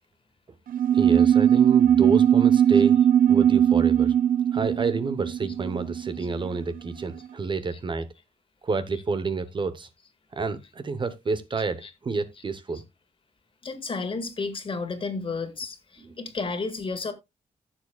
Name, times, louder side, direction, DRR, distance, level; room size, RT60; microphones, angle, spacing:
sound 1, 0.7-6.6, right 9 dB, 75° right, 0.7 m, -20 dB
voice 1, 0.9-4.1 4.5-8.1 8.6-9.9 10.3-12.8, right 4 dB, 35° right, 0.9 m, -29 dB
voice 2, 13.6-17.1, left 4 dB, 35° left, 1.7 m, -33 dB
15.0 x 7.2 x 2.3 m
wide cardioid pair, 150°, 15 cm